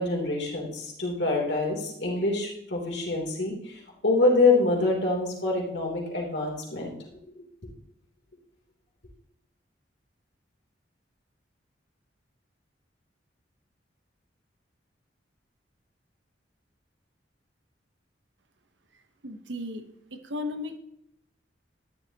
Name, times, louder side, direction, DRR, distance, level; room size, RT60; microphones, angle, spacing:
voice 1, 0.0-6.9, left 2 dB, 70° left, -1 dB, 3.2 m, -26 dB
voice 2, 19.2-19.8 20.2-20.8, left 2 dB, 80° right, 8 dB, 1.1 m, -34 dB
12.5 x 11.0 x 3.0 m, 0.75 s
head